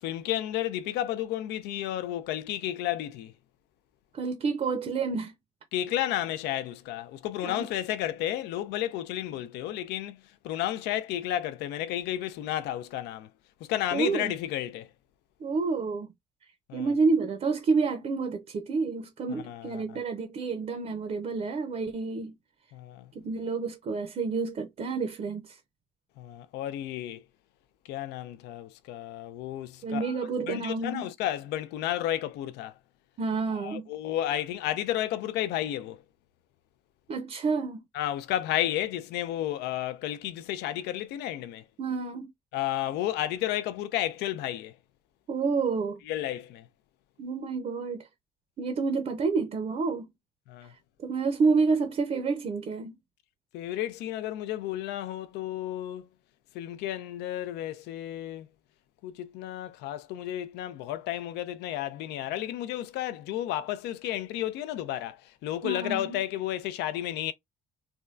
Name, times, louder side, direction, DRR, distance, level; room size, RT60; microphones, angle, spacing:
voice 1, 0.0-3.3 5.7-10.2 10.4-13.3 13.6-14.9 16.7-16.9 19.3-19.8 22.7-23.1 26.2-27.2 27.9-32.7 33.6-36.0 37.9-41.6 42.5-44.7 46.1-46.7 50.5-50.7 53.5-56.1 56.5-58.5 59.0-67.3, left 12 dB, 85° left, 0.4 m, -32 dB
voice 2, 4.1-5.3 7.4-7.7 13.9-14.3 15.4-16.1 16.7-22.3 23.1-25.6 29.8-31.1 33.2-33.9 37.1-37.8 41.8-42.3 45.3-46.0 47.2-48.1 48.6-50.1 51.0-53.0 65.6-66.2, right 4 dB, 40° right, 0.5 m, -29 dB
3.4 x 2.2 x 2.4 m
cardioid pair, 110°, 17 cm